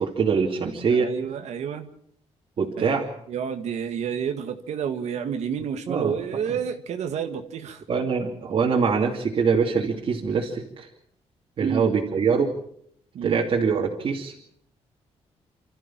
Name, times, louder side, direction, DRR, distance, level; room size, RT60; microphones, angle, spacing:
voice 1, 0.0-1.1 2.6-3.1 5.9-6.1 7.9-10.9 11.6-12.5 13.2-14.3, right 5 dB, 50° right, -3 dB, 2.8 m, -23 dB
voice 2, 0.9-1.9 2.8-2.9 3.3-7.8 11.6-11.9 13.1-13.4, right 7 dB, 80° right, 6 dB, 1.9 m, -30 dB
29.0 x 13.5 x 7.4 m, 0.69 s
wide cardioid pair, 155°, 11 cm